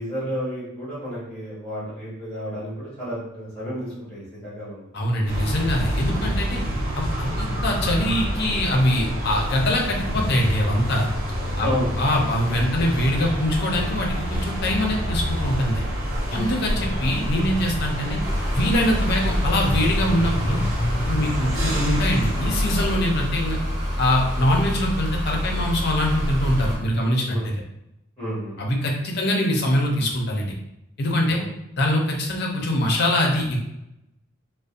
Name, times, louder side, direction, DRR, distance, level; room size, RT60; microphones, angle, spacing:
voice 1, 0.0-4.8 6.1-6.3 11.6-11.9 16.3-16.5 21.5-21.7 27.3-27.5 28.2-28.6 31.3-31.4, equal, 10° left, -11 dB, 1.3 m, -31 dB
voice 2, 4.9-6.6 6.9-11.1 11.6-11.7 12.0-15.8 16.3-18.2 18.5-20.6 21.1-23.6 24.0-27.6 28.6-30.5 31.0-31.4 31.8-33.7, left 1 dB, 50° left, 0 dB, 0.5 m, -23 dB
sound 1, 5.3-23.0, equal, 70° right, 0.6 m, -27 dB
sound 2, 18.2-26.8, equal, 20° right, 0.5 m, -27 dB
2.6 x 2.0 x 2.4 m, 0.86 s
head